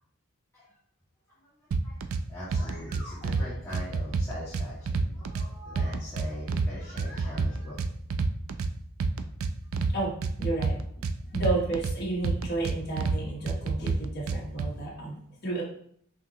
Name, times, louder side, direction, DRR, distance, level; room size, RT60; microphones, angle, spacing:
sound 1, 1.7-2.2 2.5-3.4 3.7-5.5 5.8-6.7 7.0-8.7 9.0-9.9 10.2-11.9 12.2-13.2 13.5-14.7, right 4 dB, 75° right, 0.4 m, -28 dB
voice 1, 1.8-7.8, left 1 dB, 10° left, -13 dB, 1.9 m, -41 dB
voice 2, 9.9-10.8 11.3-15.6, right 2 dB, 50° left, -4 dB, 1.2 m, -32 dB
6.0 x 2.9 x 3.0 m, 0.64 s
head